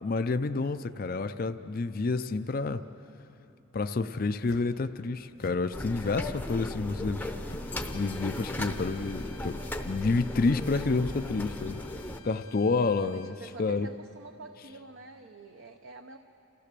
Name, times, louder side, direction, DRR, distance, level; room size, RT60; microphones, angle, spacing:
voice 1, 0.0-2.8 3.7-7.3 7.9-9.6 9.8-11.8 12.2-13.9, left 3 dB, 40° left, 10 dB, 0.4 m, -29 dB
sound 1, 4.4-4.8 5.3-5.7 6.4-6.8 7.4-7.8 8.4-8.8 9.4-9.7 10.4-10.7, left 2 dB, 65° left, 1.1 m, -50 dB
sound 2, 5.7-12.2, left 1 dB, 10° left, 0.7 m, -37 dB
Bowed string instrument, 7.6-13.4, left 6 dB, 85° left, 1.0 m, -54 dB
voice 2, 12.7-16.2, right 3 dB, 55° right, 5 dB, 0.7 m, -47 dB
29.0 x 15.5 x 6.8 m, 2.9 s
head